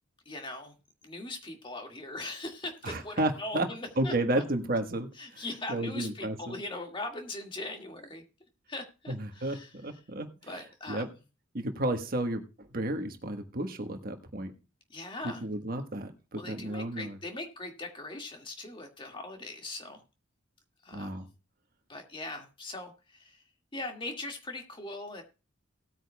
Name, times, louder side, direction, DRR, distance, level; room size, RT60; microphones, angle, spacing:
voice 1, 0.3-0.7 1.0-4.4 5.2-8.2 8.7-9.7 10.4-11.1 14.9-15.4 16.3-20.0 20.8-21.2 21.9-23.4 23.7-25.2, left 2 dB, 25° left, 4 dB, 2.0 m, -40 dB
voice 2, 2.8-3.7 4.0-5.4 5.7-6.6 9.1-10.3 10.5-11.1 11.5-14.5 15.4-17.2 20.9-21.3, right 1 dB, 45° right, 6 dB, 1.4 m, -32 dB
18.0 x 9.0 x 2.3 m, 0.30 s
head